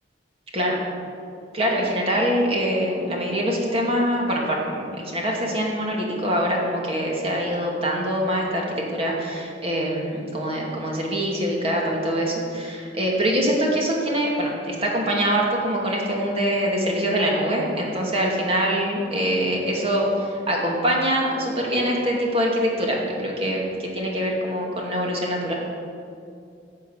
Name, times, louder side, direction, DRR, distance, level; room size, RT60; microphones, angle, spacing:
voice 1, 1.5-25.5, equal, 35° right, -2 dB, 2.5 m, -24 dB
15.5 x 8.0 x 6.5 m, 2.4 s
head